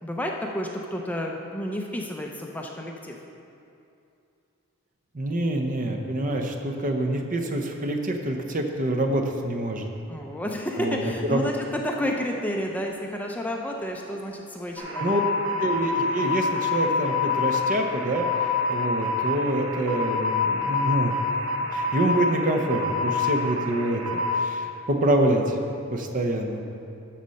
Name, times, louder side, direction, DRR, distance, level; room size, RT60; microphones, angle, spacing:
voice 1, 0.0-3.2 10.1-15.2, left 1 dB, 5° left, 0 dB, 0.5 m, -31 dB
voice 2, 5.1-9.9 10.8-11.0 11.3-11.4 15.0-15.2 15.6-18.3 18.7-21.1 21.7-25.6 25.9-26.6, right 1 dB, 40° right, 4 dB, 0.7 m, -26 dB
sound 1, 14.8-24.4, left 4 dB, 70° right, 1.0 m, -27 dB
12.0 x 4.2 x 6.4 m, 2.6 s
head